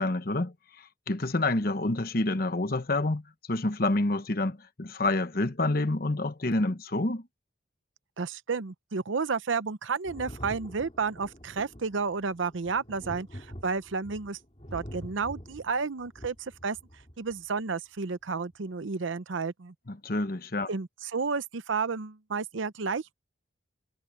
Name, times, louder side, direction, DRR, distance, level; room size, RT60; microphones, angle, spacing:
voice 1, 0.0-7.2 19.9-20.7, left 2 dB, 50° left, 1.1 m, -28 dB
voice 2, 8.2-14.4 14.7-16.8 17.2-19.7 20.7-23.1, right 5 dB, 75° right, 0.7 m, -31 dB
Thunder, 10.0-17.4 18.5-18.6, equal, 30° left, 4.1 m, -45 dB
head